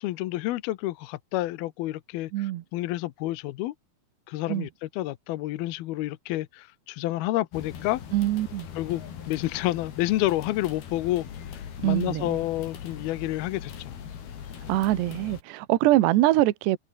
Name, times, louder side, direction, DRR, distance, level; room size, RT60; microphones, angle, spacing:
voice 1, 0.0-3.7 4.3-8.0 8.8-9.0 9.3-14.0, left 16 dB, 75° left, 2.4 m, -29 dB
voice 2, 2.3-2.6 4.5-4.7 8.1-8.7 11.8-12.4 14.7-16.8, right 16 dB, 75° right, 3.2 m, -23 dB
sound 1, 7.5-15.4, left 8 dB, 60° left, 4.9 m, -41 dB
omnidirectional pair, 5.3 m